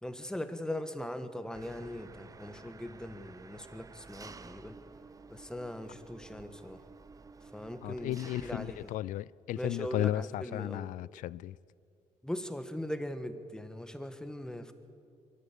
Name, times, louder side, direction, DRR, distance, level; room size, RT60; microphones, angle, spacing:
voice 1, 0.0-4.8 5.3-6.8 7.5-8.8 9.5-10.9 12.2-14.7, left 1 dB, 5° left, 1.5 m, -40 dB
Engine, 1.5-9.0, right 4 dB, 25° right, 0.7 m, -52 dB
voice 2, 7.8-11.6, left 13 dB, 80° left, 0.4 m, -34 dB
23.0 x 13.5 x 8.6 m
cardioid pair, 95°, 13 cm